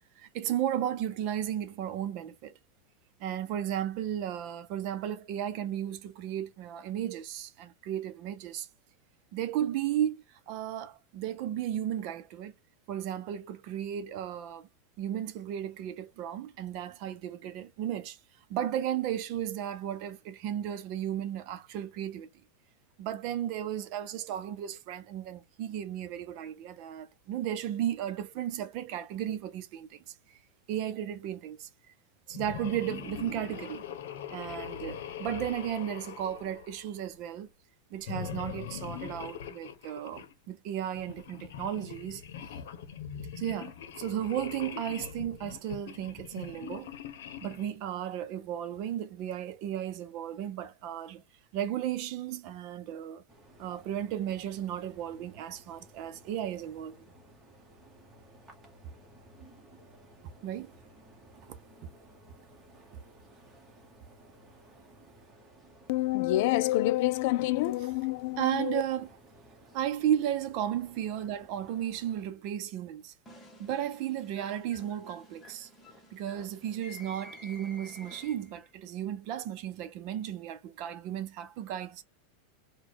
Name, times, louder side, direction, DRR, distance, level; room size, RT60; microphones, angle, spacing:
voice 1, 0.2-2.5 3.2-8.7 9.3-12.5 12.9-14.7 15.0-18.2 18.5-22.3 23.0-30.0 30.3-30.4 30.7-31.9 32.3-33.9 34.3-37.5 37.9-42.2 43.4-46.9 47.4-51.2 51.5-53.2 53.6-57.0 60.4-60.7 68.4-69.1 69.7-73.1 73.6-75.7 76.1-82.0, right 10 dB, 50° right, 0.7 m, -34 dB
sound 1, 32.3-37.2 38.0-40.3 41.0-47.8, left 8 dB, 80° left, 0.8 m, -42 dB
sound 2, 53.3-72.3, right 1 dB, 10° right, 1.2 m, -57 dB
voice 2, 65.9-68.8, left 16 dB, 60° left, 0.4 m, -27 dB
sound 3, 73.3-78.7, left 1 dB, 15° left, 1.3 m, -52 dB
4.1 x 2.3 x 4.6 m
supercardioid pair, 150°, 0 cm